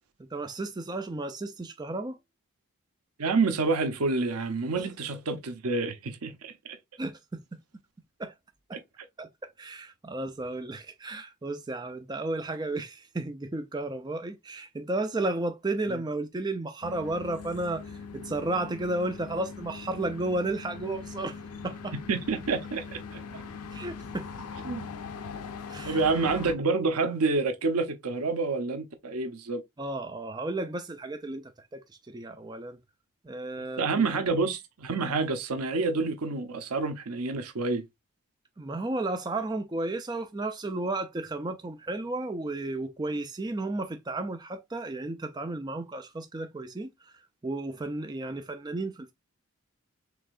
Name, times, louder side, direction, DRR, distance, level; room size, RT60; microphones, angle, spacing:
voice 1, 0.2-2.2 4.7-4.8 7.0-7.6 8.2-8.3 8.7-8.8 9.2-21.9 23.7-24.3 25.7-26.0 29.8-32.8 33.2-34.1 38.6-49.1, right 2 dB, 20° right, 0.4 m, -33 dB
voice 2, 3.2-6.5 22.1-22.8 23.1-23.4 24.7-24.9 25.8-29.6 33.8-37.8, right 3 dB, 90° right, 0.8 m, -28 dB
sound 1, 16.8-26.6, left 5 dB, 90° left, 0.6 m, -41 dB
4.8 x 3.5 x 2.4 m
head